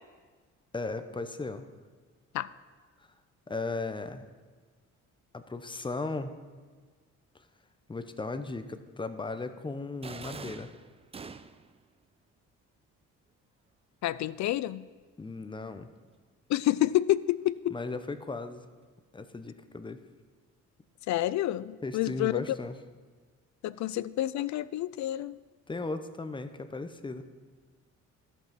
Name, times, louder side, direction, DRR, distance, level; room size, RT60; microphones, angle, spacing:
voice 1, 0.7-1.7 3.5-4.3 5.3-6.3 7.9-10.7 15.2-15.9 17.7-18.7 19.1-20.0 21.8-22.8 25.7-27.2, left 3 dB, 15° left, 10 dB, 0.7 m, -36 dB
sound 1, 10.0-11.8, right 5 dB, 20° right, 0.4 m, -44 dB
voice 2, 14.0-14.9 16.5-17.7 21.1-22.4 23.6-25.4, left 14 dB, 65° left, 18 dB, 0.4 m, -28 dB
13.0 x 5.4 x 5.9 m, 1.5 s
cardioid pair, 90°, 30 cm